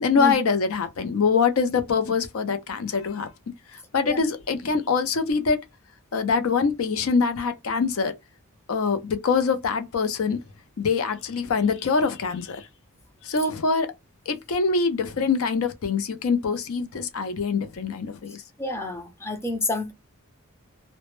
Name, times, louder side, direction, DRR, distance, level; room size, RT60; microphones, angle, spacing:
voice 1, 0.0-3.3 3.7-5.6 6.1-8.2 8.7-10.4 10.8-12.7 13.2-13.9 14.3-18.4, left 5 dB, 70° left, 0.5 m, -24 dB
voice 2, 18.6-19.9, left 1 dB, 10° left, 0.4 m, -28 dB
2.1 x 2.0 x 3.0 m
head